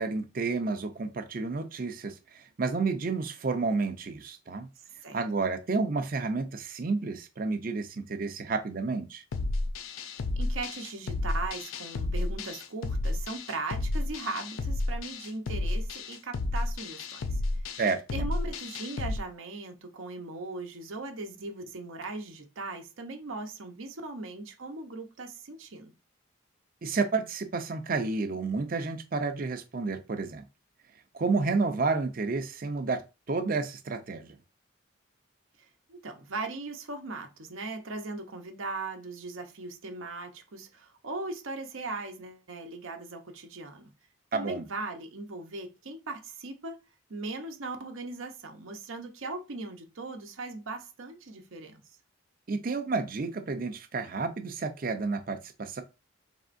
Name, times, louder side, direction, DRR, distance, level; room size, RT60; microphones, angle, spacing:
voice 1, 0.0-4.7 5.1-9.2 17.8-18.3 26.8-30.4 31.1-33.0 33.3-34.4 44.3-44.7 52.5-55.8, right 4 dB, 45° right, 0.5 m, -30 dB
sound 1, 9.3-19.2, left 2 dB, 85° left, 0.5 m, -31 dB
voice 2, 10.3-17.4 18.1-25.9 35.6-43.9 44.3-46.8 47.1-51.8, right 3 dB, 80° right, 0.8 m, -39 dB
4.2 x 3.5 x 2.5 m
head